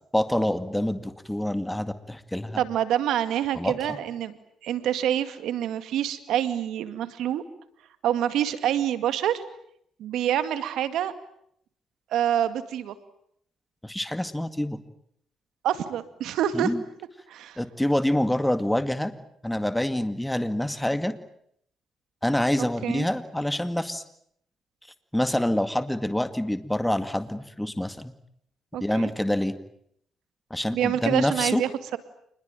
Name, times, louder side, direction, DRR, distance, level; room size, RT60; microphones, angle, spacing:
voice 1, 0.1-2.6 3.5-4.0 13.8-14.8 16.5-16.8 17.6-19.1 19.4-21.1 22.2-24.0 25.1-28.1 28.8-29.6 30.5-31.6, left 1 dB, 5° left, 10 dB, 2.0 m, -26 dB
voice 2, 2.6-4.3 4.6-7.4 8.0-9.4 10.0-11.1 12.1-12.9 15.6-16.7 17.3-17.6 22.8-23.1 28.7-29.1 30.7-32.0, right 11 dB, 80° right, 11 dB, 2.2 m, -26 dB
27.5 x 21.0 x 9.1 m, 0.71 s
cardioid pair, 90°, 0 cm